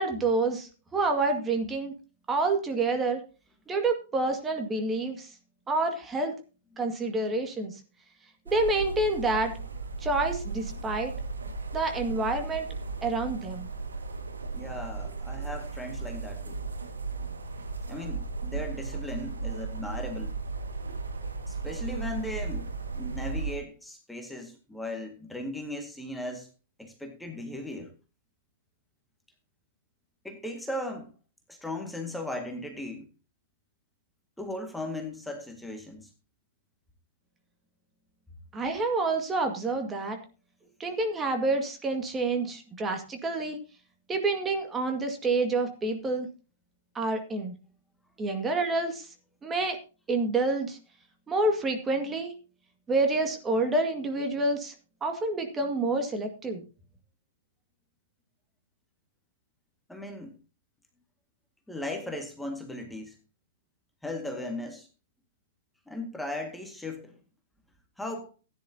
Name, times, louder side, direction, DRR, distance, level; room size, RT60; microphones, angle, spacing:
voice 1, 0.0-1.9 2.3-3.2 3.7-5.3 5.7-6.4 6.8-7.8 8.5-9.5 10.0-11.1 11.7-12.7 13.0-13.7 38.5-40.2 40.8-43.6 44.1-46.3 46.9-47.5 48.2-49.1 49.4-49.8 50.1-50.8 51.3-52.4 52.9-54.7 55.0-56.6, right 2 dB, 15° right, 5 dB, 2.1 m, -28 dB
sound 1, 8.5-23.6, right 4 dB, 80° right, 1.9 m, -36 dB
voice 2, 14.5-16.6 17.9-20.3 21.5-22.7 22.9-26.5 26.8-27.9 30.2-31.1 31.5-33.1 34.4-36.1 59.9-60.4 61.7-63.2 64.0-64.9 65.9-67.2 68.0-68.3, left 1 dB, 5° left, 3 dB, 2.0 m, -37 dB
15.5 x 10.0 x 2.9 m, 0.33 s
figure-of-eight pair, 110°, 0 cm